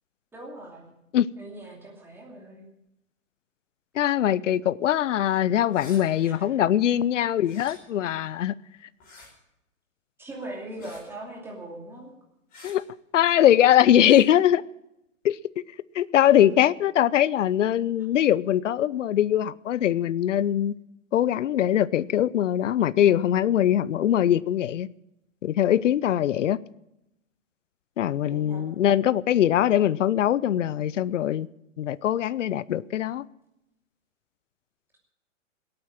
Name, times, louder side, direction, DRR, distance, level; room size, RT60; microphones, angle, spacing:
voice 1, 0.3-0.9 1.4-2.7 6.1-6.5 6.8-6.9 10.2-12.1 16.5-16.6 28.3-28.7, right 1 dB, 5° right, 2.5 m, -40 dB
voice 2, 3.9-8.5 12.6-12.8 13.1-14.6 15.2-15.4 15.9-20.7 21.1-24.9 25.4-26.6 28.0-31.5 31.8-33.2, left 11 dB, 65° left, 0.7 m, -22 dB
sound 1, 5.7-6.0 7.4-7.8 9.0-9.3 10.8-11.1 12.5-12.7 14.0-14.3, left 3 dB, 20° left, 5.0 m, -47 dB
18.0 x 8.8 x 7.6 m
hypercardioid pair, 155°, 39 cm